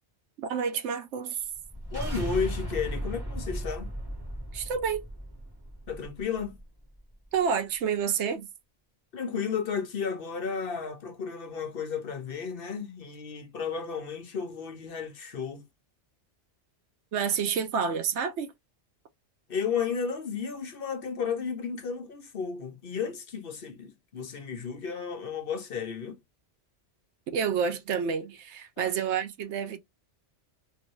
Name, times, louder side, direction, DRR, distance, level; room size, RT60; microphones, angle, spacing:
voice 1, 0.4-1.4 4.5-5.0 7.3-8.5 17.1-18.5 27.3-29.8, right 6 dB, 75° right, 0.9 m, -29 dB
sound 1, 1.5-6.6, equal, 20° right, 1.4 m, -36 dB
voice 2, 1.9-3.9 5.9-6.6 9.1-15.6 19.5-26.2 28.8-28.9, left 6 dB, 55° left, 0.9 m, -33 dB
2.9 x 2.6 x 3.0 m
omnidirectional pair, 1.2 m